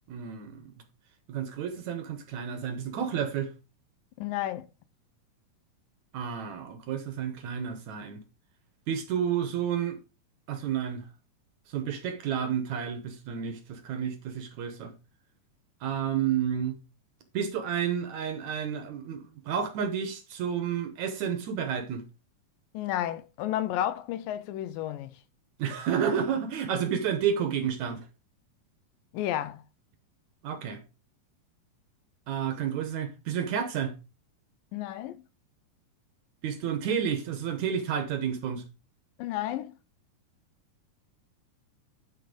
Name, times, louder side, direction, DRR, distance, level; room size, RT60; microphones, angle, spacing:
voice 1, 0.1-0.7 1.3-3.5 6.1-8.2 8.9-10.0 10.5-11.0 11.7-14.9 15.8-16.8 17.3-22.0 25.6-28.0 30.4-30.8 32.3-33.9 36.4-38.6, right 8 dB, 65° right, 2.1 m, -30 dB
voice 2, 4.2-4.7 22.7-25.1 29.1-29.6 34.7-35.2 39.2-39.7, left 12 dB, 85° left, 2.3 m, -32 dB
10.5 x 4.5 x 4.9 m
omnidirectional pair, 4.0 m